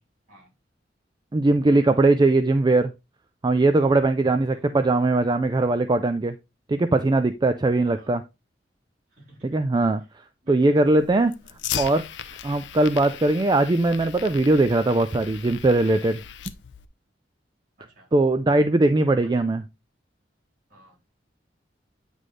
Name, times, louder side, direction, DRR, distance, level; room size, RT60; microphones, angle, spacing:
voice 1, 1.3-2.9 3.4-6.3 6.7-8.2 9.4-10.0 10.5-11.3 11.8-12.0 12.4-16.2 18.1-19.6, right 2 dB, 25° right, 0.4 m, -20 dB
voice 2, 9.1-9.6 10.4-10.8 17.8-18.1 19.2-19.4 20.7-21.2, right 1 dB, 50° right, 3.7 m, -53 dB
Fire, 10.9-16.9, left 9 dB, 90° left, 0.5 m, -37 dB
9.3 x 3.3 x 3.8 m
head